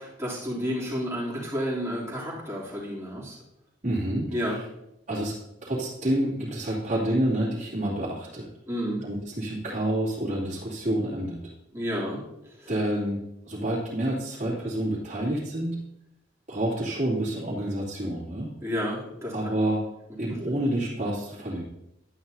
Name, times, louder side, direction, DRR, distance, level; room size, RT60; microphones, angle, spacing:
voice 1, 0.0-3.3 4.3-4.6 8.7-9.0 11.7-12.2 12.6-12.7 18.6-19.3, equal, 15° right, -6 dB, 2.9 m, -31 dB
voice 2, 3.8-4.6 5.1-5.3 5.6-8.5 9.0-11.4 12.7-13.2 13.5-15.8 16.5-18.5 19.3-19.8 20.2-21.6, right 1 dB, 40° right, -8 dB, 2.5 m, -28 dB
11.0 x 9.6 x 2.7 m, 0.83 s
head